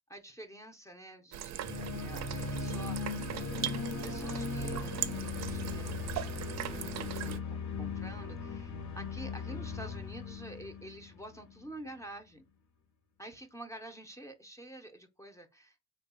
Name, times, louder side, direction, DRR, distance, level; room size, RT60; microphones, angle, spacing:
voice 1, 0.1-3.2 3.9-12.4 13.2-15.9, right 1 dB, 10° left, 0.6 m, -49 dB
sound 1, 1.3-7.4, right 11 dB, 65° right, 0.4 m, -39 dB
sound 2, 1.6-11.6, left 4 dB, 65° left, 0.9 m, -38 dB
3.2 x 2.2 x 4.2 m
cardioid pair, 90°, 30 cm